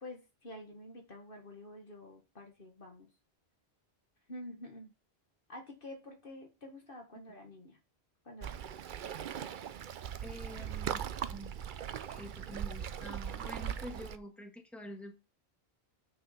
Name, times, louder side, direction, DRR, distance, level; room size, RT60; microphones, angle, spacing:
voice 1, 0.0-3.1 4.3-4.9 5.5-7.8 8.2-8.6, left 1 dB, 60° left, 3 dB, 2.0 m, -48 dB
Waves surf, 8.4-14.2, right 9 dB, 60° right, 0.7 m, -39 dB
voice 2, 10.2-11.5 12.1-15.2, equal, ahead, 3 dB, 1.5 m, -47 dB
6.7 x 6.1 x 5.9 m, 0.29 s
omnidirectional pair, 1.1 m